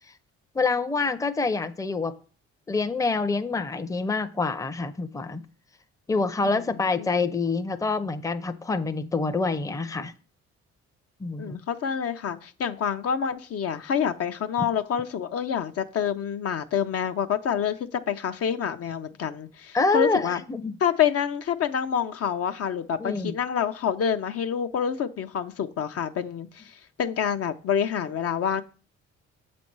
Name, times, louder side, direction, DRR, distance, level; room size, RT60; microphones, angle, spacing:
voice 1, 0.5-2.1 2.7-5.4 6.1-10.1 11.2-11.6 19.7-20.7 23.0-23.4, left 3 dB, 10° left, 0.6 m, -26 dB
voice 2, 11.4-20.4 20.8-28.6, left 8 dB, 55° left, 0.6 m, -27 dB
7.1 x 4.2 x 4.6 m
supercardioid pair, 65°, 29 cm